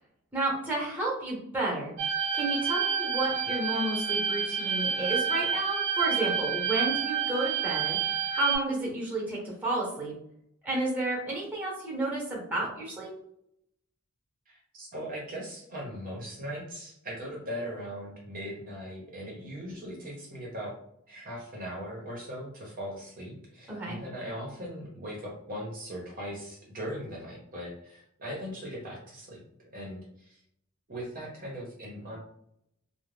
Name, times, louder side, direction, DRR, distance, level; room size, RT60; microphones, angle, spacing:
voice 1, 0.3-1.9 2.3-8.0 8.3-10.1 10.6-13.1 23.7-24.0, right 2 dB, 10° right, -4 dB, 0.9 m, -31 dB
sound 1, 2.0-8.6, right 7 dB, 90° right, 0.4 m, -29 dB
voice 2, 14.5-20.7 21.1-29.4 29.7-30.4 30.9-32.2, equal, 40° right, -3 dB, 0.7 m, -39 dB
2.4 x 2.1 x 3.2 m, 0.73 s
head